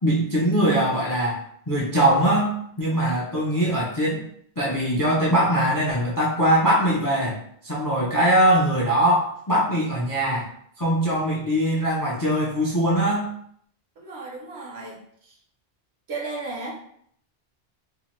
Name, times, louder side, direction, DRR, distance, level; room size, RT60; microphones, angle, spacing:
voice 1, 0.0-1.4 1.7-4.2 4.6-7.4 7.6-10.5 10.8-13.3, right 1 dB, 35° left, -5 dB, 0.3 m, -21 dB
voice 2, 14.0-15.0 16.1-16.7, right 3 dB, 75° right, -1 dB, 1.0 m, -34 dB
2.7 x 2.1 x 3.0 m, 0.66 s
omnidirectional pair, 1.1 m